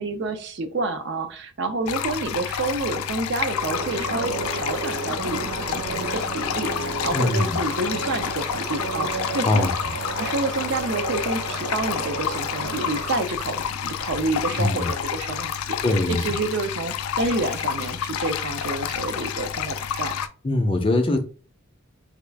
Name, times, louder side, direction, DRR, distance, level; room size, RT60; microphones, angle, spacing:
voice 1, 0.0-9.7 10.2-15.8 16.1-20.2, right 2 dB, 55° right, 0.5 m, -29 dB
sound 1, 1.9-20.3, left 8 dB, 85° left, 0.4 m, -29 dB
sound 2, 3.4-13.2, right 3 dB, 85° right, 0.8 m, -32 dB
voice 2, 7.1-7.6 9.5-9.7 14.6-14.9 15.8-16.3 20.4-21.2, left 2 dB, 25° left, 0.4 m, -22 dB
3.5 x 2.3 x 3.3 m
head